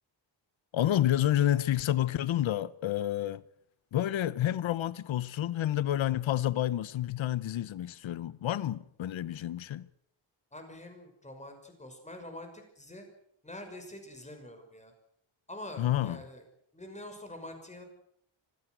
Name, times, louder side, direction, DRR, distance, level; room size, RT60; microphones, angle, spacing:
voice 1, 0.7-3.4 3.9-9.9 15.8-16.2, left 12 dB, 85° left, 0.9 m, -29 dB
voice 2, 10.5-13.1 13.4-14.9 15.5-16.4 16.7-17.8, left 1 dB, 15° left, 5.8 m, -45 dB
25.0 x 16.5 x 7.9 m
wide cardioid pair, 130°, 46 cm